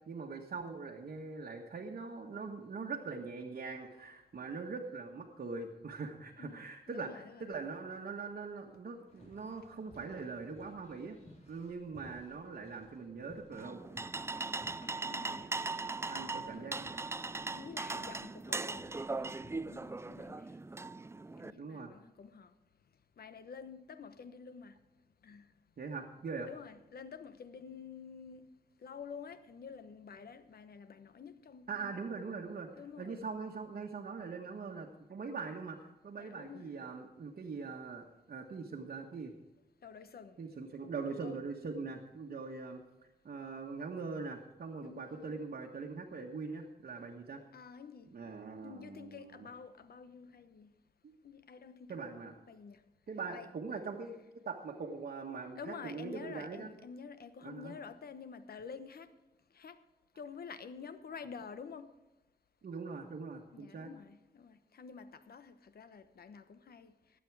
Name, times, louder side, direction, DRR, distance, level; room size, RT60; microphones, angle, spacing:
voice 1, 0.1-11.2 11.5-13.8 16.0-17.0 21.6-21.9 25.8-26.5 31.7-32.7 33.0-39.3 40.4-42.8 43.2-47.4 48.1-49.5 51.9-52.4 53.1-54.2 54.4-56.7 57.4-57.7 62.6-63.9, right 4 dB, 75° right, 1.3 m, -42 dB
voice 2, 6.9-7.5 15.1-15.7 16.3-16.7 17.5-19.4 19.7-20.5 21.4-22.5 23.2-24.8 25.2-25.5 26.5-28.5 28.8-32.0 32.8-33.2 36.2-36.7 39.8-40.4 41.2-41.3 44.8-45.3 47.5-48.1 48.6-50.7 51.2-52.8 53.3-53.5 55.6-59.1 59.5-59.8 60.2-61.9 63.5-66.9, left 6 dB, 85° left, 1.0 m, -49 dB
sound 1, 9.1-20.2, left 1 dB, 45° left, 4.3 m, -60 dB
sound 2, 13.5-21.5, right 3 dB, 15° right, 0.4 m, -39 dB
17.5 x 8.5 x 4.8 m
wide cardioid pair, 80°, 16 cm